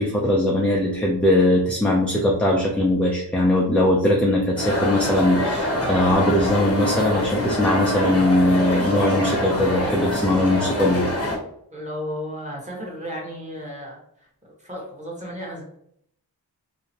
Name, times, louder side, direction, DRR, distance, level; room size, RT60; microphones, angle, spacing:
voice 1, 0.0-11.1, left 1 dB, 5° left, -3 dB, 0.5 m, -20 dB
sound 1, 4.6-11.4, left 1 dB, 35° left, 0.9 m, -25 dB
voice 2, 11.7-15.6, equal, 15° right, -3 dB, 1.3 m, -34 dB
2.8 x 2.1 x 2.8 m, 0.70 s
cardioid pair, 50°, 40 cm